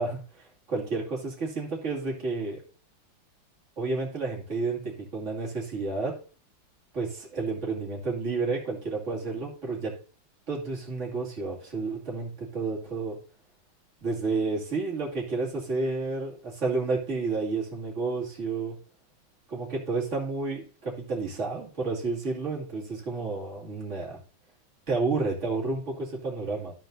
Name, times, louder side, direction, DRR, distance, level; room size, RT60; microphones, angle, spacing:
voice 1, 0.0-2.6 3.8-6.2 6.9-9.9 10.5-13.2 14.0-18.8 19.5-24.2 24.9-26.7, right 3 dB, 35° right, -3 dB, 2.8 m, -31 dB
13.0 x 4.5 x 4.0 m, 0.40 s
omnidirectional pair, 2.2 m